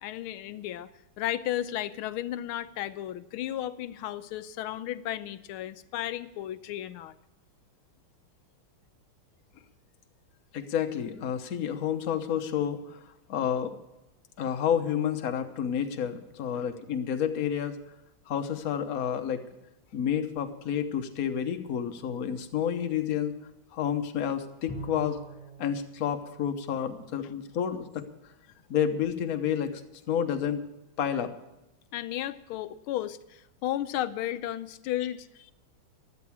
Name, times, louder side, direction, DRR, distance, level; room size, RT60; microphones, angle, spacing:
voice 1, 0.0-7.1 16.5-16.7 31.9-35.5, left 12 dB, 80° left, 13 dB, 1.5 m, -34 dB
voice 2, 10.5-13.0 13.3-13.7 14.4-17.8 18.3-19.4 19.9-23.3 23.7-25.2 25.6-28.0 28.7-29.8 30.1-30.6 31.0-31.3, left 8 dB, 50° left, 6 dB, 1.3 m, -30 dB
Bowed string instrument, 24.7-27.3, right 3 dB, 20° left, 2.5 m, -45 dB
15.5 x 11.5 x 4.8 m, 0.95 s
omnidirectional pair, 2.3 m